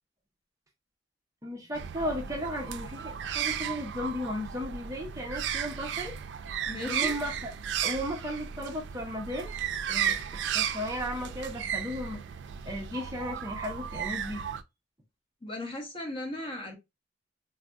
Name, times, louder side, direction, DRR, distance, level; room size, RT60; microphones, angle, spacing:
voice 1, 1.4-6.1 6.8-7.5 7.8-9.5 9.9-12.2 12.7-14.4, equal, 20° right, 0.6 m, -35 dB
sound 1, 1.7-14.6, right 8 dB, 80° right, 0.3 m, -34 dB
voice 2, 6.7-7.1 15.4-16.8, left 1 dB, 30° left, 0.8 m, -37 dB
3.3 x 2.6 x 2.2 m
head